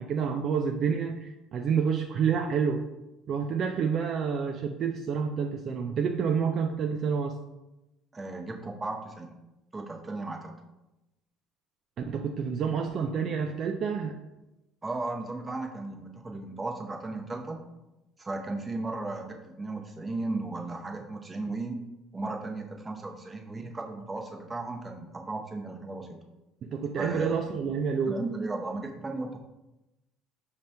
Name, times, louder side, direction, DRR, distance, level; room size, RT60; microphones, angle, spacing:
voice 1, 0.0-2.8 3.3-7.4 12.0-14.2 26.6-28.2, right 6 dB, 50° right, 4 dB, 0.3 m, -28 dB
voice 2, 8.1-9.3 9.7-10.5 14.8-17.6 18.2-21.8 22.1-26.2 27.0-27.4 28.1-29.4, right 2 dB, 20° right, 2 dB, 0.7 m, -35 dB
5.1 x 2.8 x 3.3 m, 0.98 s
supercardioid pair, 90°, 0 cm